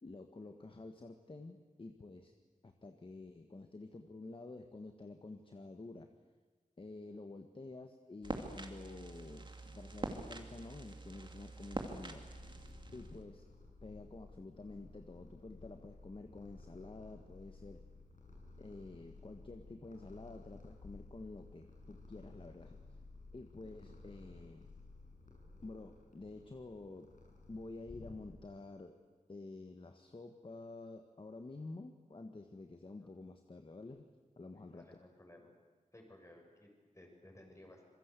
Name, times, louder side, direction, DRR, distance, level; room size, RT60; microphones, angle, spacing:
voice 1, 0.0-2.3 2.6-6.1 6.8-13.4 13.8-17.8 18.6-22.8 23.3-24.7 25.6-27.1 27.5-29.0 29.3-34.1 34.4-35.0, left 2 dB, 40° left, 6 dB, 1.6 m, -50 dB
sound 1, 8.2-13.2, right 2 dB, 35° right, 2.7 m, -45 dB
Purr, 12.0-28.7, left 3 dB, 75° left, 6.6 m, -56 dB
voice 2, 34.5-35.5 35.9-37.8, left 1 dB, 20° left, 2 dB, 6.6 m, -58 dB
26.5 x 22.5 x 8.4 m, 1.3 s
wide cardioid pair, 100°, 13 cm